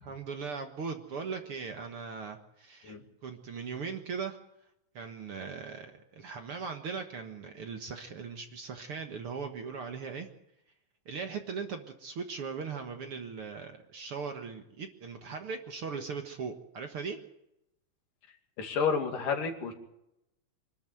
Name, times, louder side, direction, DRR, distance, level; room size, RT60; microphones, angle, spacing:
voice 1, 0.0-3.0 3.2-4.4 4.9-10.3 11.1-17.2, right 5 dB, 50° right, 5 dB, 2.0 m, -39 dB
voice 2, 18.6-19.7, left 5 dB, 80° left, 4 dB, 4.1 m, -30 dB
25.0 x 12.5 x 9.3 m, 0.84 s
omnidirectional pair, 3.7 m